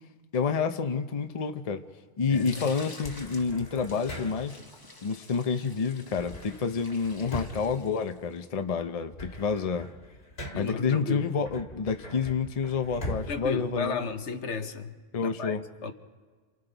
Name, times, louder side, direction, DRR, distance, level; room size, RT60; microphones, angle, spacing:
voice 1, 0.3-1.8 2.2-4.6 5.0-9.9 10.5-14.0 15.1-15.6, left 5 dB, 40° left, 8 dB, 0.7 m, -29 dB
voice 2, 2.3-2.7 10.5-11.3 13.3-15.9, left 4 dB, 80° left, 7 dB, 1.3 m, -34 dB
sound 1, 2.3-8.4, left 2 dB, 20° left, 1.1 m, -49 dB
sound 2, 3.0-4.7 6.1-8.6 8.9-10.9 11.4-14.5, left 1 dB, 60° left, 2.0 m, -41 dB
29.0 x 27.0 x 4.0 m, 1.5 s
omnidirectional pair, 1.2 m